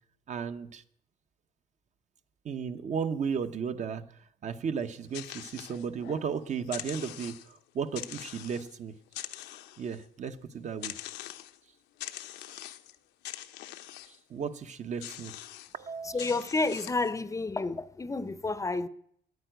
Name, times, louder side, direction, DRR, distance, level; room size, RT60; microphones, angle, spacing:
voice 1, 0.3-0.8 2.4-4.1 4.4-8.9 9.8-11.0 14.0-15.3 15.7-16.3, right 6 dB, 45° right, 0.9 m, -35 dB
sound 1, 4.8-6.3 6.6-7.6 7.9-8.7 9.1-10.0 10.8-11.6 12.0-12.9 13.2-14.2 15.0-15.7 16.2-17.1, left 14 dB, 85° left, 0.9 m, -43 dB
voice 2, 16.0-18.9, left 3 dB, 20° left, 0.7 m, -30 dB
11.0 x 9.5 x 9.2 m
cardioid pair, 110°, 17 cm